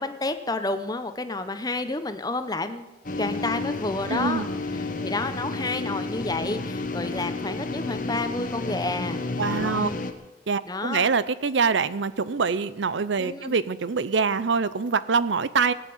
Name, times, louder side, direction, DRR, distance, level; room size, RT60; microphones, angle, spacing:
voice 1, 0.0-2.9 3.2-4.5 5.0-10.0 10.6-11.1 13.2-13.5, left 2 dB, 20° left, 9 dB, 0.9 m, -30 dB
sound 1, 3.0-10.1, left 3 dB, 45° left, 1.3 m, -31 dB
voice 2, 4.1-4.5 9.4-9.9 10.5-15.7, right 5 dB, 80° right, 16 dB, 0.6 m, -24 dB
18.5 x 9.1 x 7.9 m, 1.1 s
head